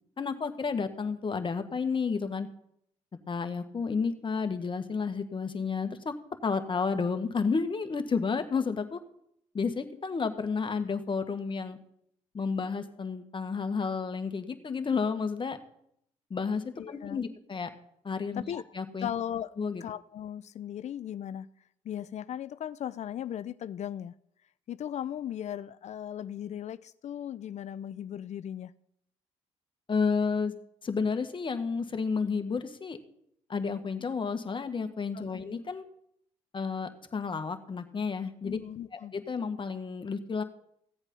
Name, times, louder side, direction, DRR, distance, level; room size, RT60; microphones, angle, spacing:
voice 1, 0.2-2.5 3.3-6.1 6.4-9.0 9.5-11.8 12.3-15.6 16.3-17.7 18.0-19.1 19.6-19.8 29.9-30.5 30.8-33.0 33.5-35.8 36.5-38.6 38.9-40.4, left 5 dB, 40° left, 1.6 m, -31 dB
voice 2, 16.8-17.3 18.3-18.6 19.0-19.5 19.8-21.5 21.8-24.1 24.7-28.7 35.1-35.4 38.4-39.1, left 10 dB, 60° left, 0.5 m, -37 dB
16.0 x 8.1 x 5.5 m
supercardioid pair, 60°, 13 cm